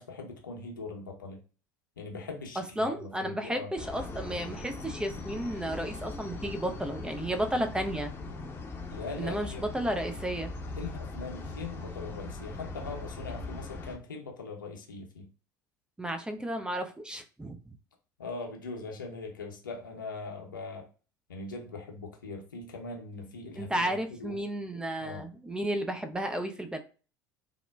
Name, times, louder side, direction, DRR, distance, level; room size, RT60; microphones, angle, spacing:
voice 1, 0.0-1.4 2.0-3.7 8.9-9.7 10.8-15.3 18.2-20.9 21.3-24.4 25.0-25.2, left 3 dB, 80° left, 1 dB, 0.7 m, -41 dB
voice 2, 2.6-8.1 9.2-10.5 16.0-17.7 23.6-26.8, right 1 dB, 10° right, 5 dB, 0.4 m, -33 dB
sound 1, 3.8-14.0, left 3 dB, 20° left, 0.7 m, -40 dB
3.5 x 2.1 x 2.2 m, 0.37 s
figure-of-eight pair, 70°, 11 cm